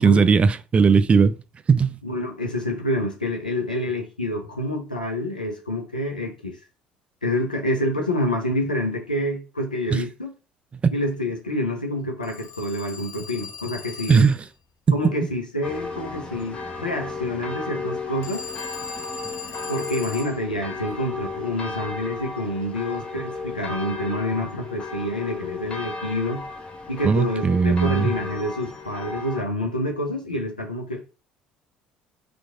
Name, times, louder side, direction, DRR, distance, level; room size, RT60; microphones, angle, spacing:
voice 1, 0.0-1.4 1.7-2.0 9.9-10.0 10.8-10.9 14.1-14.4 14.9-15.0 27.0-28.1, right 5 dB, 25° right, 0.3 m, -18 dB
voice 2, 2.0-6.6 7.2-10.3 10.9-14.3 14.9-18.5 19.7-26.4 26.9-31.1, left 1 dB, 85° left, 0.8 m, -27 dB
Telephone, 12.2-14.5 18.2-20.4, left 6 dB, 50° left, 1.0 m, -38 dB
sound 1, 15.6-29.4, left 4 dB, 25° left, 0.8 m, -34 dB
4.5 x 2.6 x 3.7 m
figure-of-eight pair, 55°, 4 cm